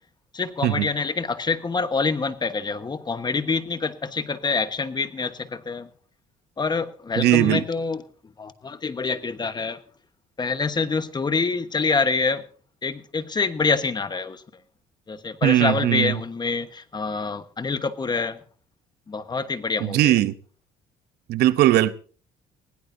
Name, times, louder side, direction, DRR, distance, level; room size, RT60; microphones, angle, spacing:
voice 1, 0.3-5.9 6.6-8.0 8.4-9.8 10.4-12.4 12.8-14.6 15.1-18.4 19.1-20.2, left 4 dB, 25° left, 1.2 m, -26 dB
voice 2, 7.2-7.6 15.4-16.1 19.8-20.3 21.3-21.9, right 14 dB, 75° right, 0.8 m, -19 dB
20.0 x 17.0 x 2.7 m
cardioid pair, 110°, 17 cm